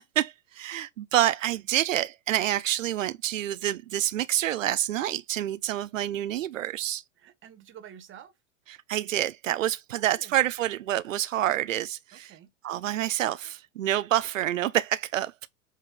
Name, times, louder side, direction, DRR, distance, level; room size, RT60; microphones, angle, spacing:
voice 1, 0.2-7.0 8.9-12.3 12.6-15.3, right 13 dB, 85° right, 0.6 m, -27 dB
voice 2, 7.2-8.3 9.9-10.5 12.1-12.5, right 9 dB, 30° right, 1.7 m, -49 dB
8.1 x 3.7 x 4.1 m
hypercardioid pair, 100°, 38 cm